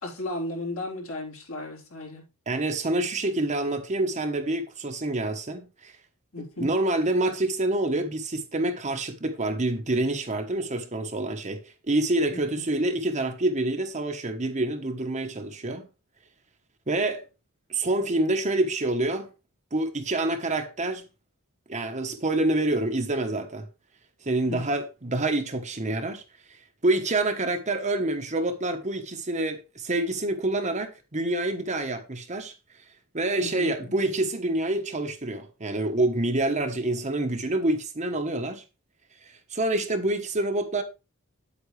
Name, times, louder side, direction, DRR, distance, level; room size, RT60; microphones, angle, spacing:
voice 1, 0.0-2.3 6.3-6.7 12.3-12.4 24.5-24.6 33.4-33.9, left 1 dB, 65° left, 3.6 m, -35 dB
voice 2, 2.5-6.0 6.6-15.9 16.9-17.2 17.7-19.3 19.7-21.1 21.7-23.7 24.2-32.8 33.1-38.6 39.2-40.8, right 2 dB, 30° right, 1.2 m, -27 dB
9.1 x 8.4 x 3.3 m
head